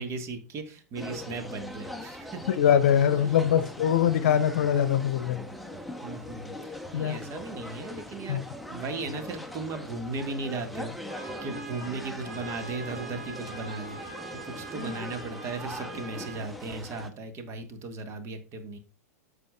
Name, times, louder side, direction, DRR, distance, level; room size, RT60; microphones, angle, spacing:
voice 1, 0.0-2.4 3.2-3.6 6.0-6.6 6.9-8.4 8.7-10.9 11.4-18.8, right 3 dB, 35° right, 7 dB, 1.9 m, -36 dB
sound 1, 1.0-17.1, left 1 dB, ahead, 1.0 m, -41 dB
voice 2, 2.6-5.5 6.9-7.2 8.3-8.4, left 9 dB, 55° left, 13 dB, 0.9 m, -23 dB
Trumpet, 11.1-16.4, right 5 dB, 75° right, 3.1 m, -43 dB
14.0 x 5.0 x 2.5 m, 0.35 s
figure-of-eight pair, 95°, 9 cm